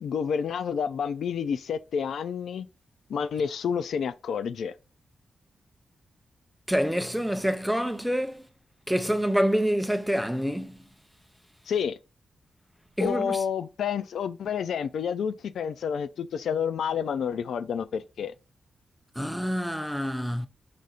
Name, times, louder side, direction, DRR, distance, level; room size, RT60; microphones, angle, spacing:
voice 1, 0.0-2.7 3.1-4.7 11.7-12.0 13.0-18.3, left 7 dB, 90° left, 0.3 m, -29 dB
voice 2, 6.7-8.5 8.9-10.8 13.0-13.4 19.2-20.5, equal, ahead, 0.4 m, -27 dB
5.0 x 2.5 x 4.1 m
wide cardioid pair, 165°, 0 cm